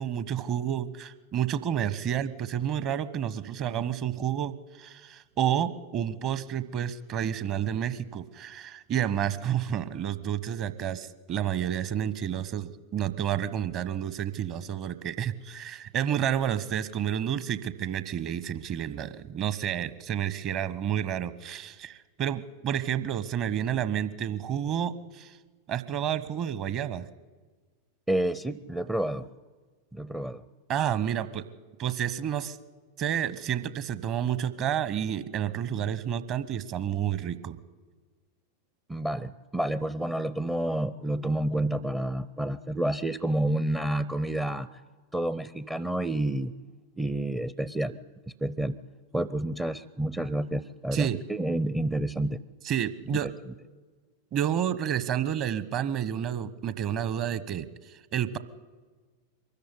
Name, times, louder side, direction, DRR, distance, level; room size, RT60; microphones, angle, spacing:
voice 1, 0.0-25.4 25.7-27.1 30.7-31.5 31.8-32.6 33.0-37.6 50.9-51.2 52.6-53.3 54.3-58.4, right 9 dB, 35° right, 14 dB, 1.1 m, -30 dB
voice 2, 28.1-29.3 29.9-30.4 38.9-44.8 45.1-46.5 47.0-48.0 48.4-48.8 49.1-52.4 53.1-53.3, right 1 dB, 5° right, 17 dB, 0.6 m, -29 dB
23.5 x 14.0 x 9.9 m, 1.4 s
figure-of-eight pair, 90°, 0 cm